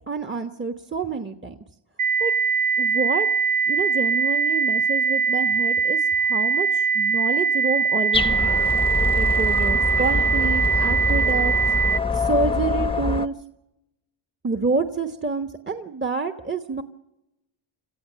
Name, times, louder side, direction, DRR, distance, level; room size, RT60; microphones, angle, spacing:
voice 1, 0.1-1.5 2.2-2.3 2.8-3.3 3.7-8.6 9.1-11.5 12.1-13.3 14.4-16.8, right 4 dB, 20° right, 8 dB, 1.2 m, -28 dB
sound 1, 2.0-12.0, right 5 dB, 40° right, 0.7 m, -22 dB
sound 2, 8.1-13.3, left 3 dB, 10° left, 0.9 m, -25 dB
27.0 x 14.5 x 7.5 m, 0.91 s
cardioid pair, 95°, 50 cm